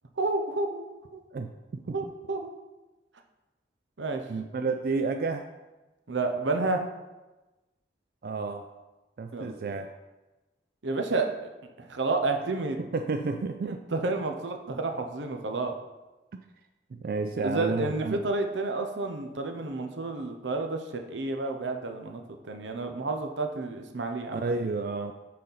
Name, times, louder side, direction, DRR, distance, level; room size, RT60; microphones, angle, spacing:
voice 1, 0.2-0.8 1.1-1.2 1.9-2.5 4.0-4.2 6.1-6.8 9.3-9.5 10.8-11.3 11.8-12.8 13.7-15.7 17.4-24.5, right 3 dB, 90° right, 5 dB, 0.8 m, -30 dB
voice 2, 4.3-5.5 8.2-8.7 9.2-9.9 12.5-13.8 16.9-18.2 24.3-25.1, right 4 dB, 50° right, 7 dB, 0.3 m, -31 dB
6.5 x 4.1 x 5.6 m, 1.1 s
head